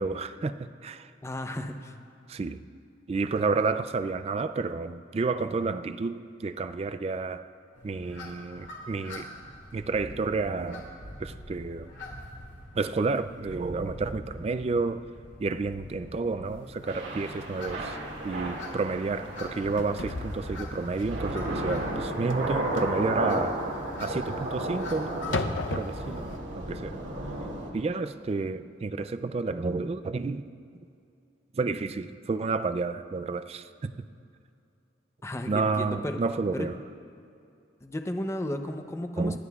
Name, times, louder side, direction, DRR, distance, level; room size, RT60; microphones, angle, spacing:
voice 1, 0.0-1.1 2.3-2.6 3.1-7.5 7.8-9.3 9.7-10.9 11.2-11.9 12.8-15.0 15.4-18.0 18.2-23.6 24.0-27.0 27.7-30.5 31.5-34.1 35.5-36.8 39.2-39.4, right 4 dB, 35° right, 11 dB, 0.3 m, -30 dB
voice 2, 1.2-1.9 35.2-36.2 36.5-36.7 37.8-39.4, left 1 dB, 15° left, 6 dB, 0.6 m, -34 dB
sound 1, 7.7-26.3, left 1 dB, 70° left, 2.6 m, -44 dB
sound 2, 16.8-16.9 17.3-17.4 17.9-18.1 18.5-18.8 19.1-26.4, left 3 dB, 90° left, 0.7 m, -37 dB
Thunder / Rain, 16.9-27.7, right 1 dB, 90° right, 2.1 m, -34 dB
26.5 x 11.0 x 2.4 m, 2.6 s
head